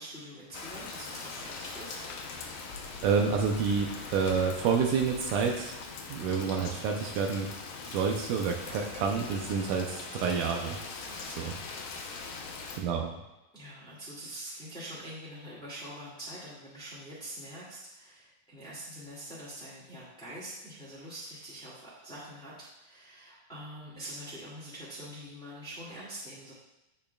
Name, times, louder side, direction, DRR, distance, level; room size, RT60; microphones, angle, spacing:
voice 1, 0.0-2.0 11.1-11.4 12.5-12.9 13.5-26.5, right 1 dB, ahead, -10 dB, 1.5 m, -44 dB
Rain, 0.5-12.8, left 4 dB, 80° left, 2.7 m, -41 dB
voice 2, 3.0-5.7 6.1-7.5 7.9-10.8 11.3-11.5 12.8-13.1, right 6 dB, 75° right, 2 dB, 2.1 m, -28 dB
15.5 x 5.5 x 2.4 m, 0.96 s
omnidirectional pair, 4.0 m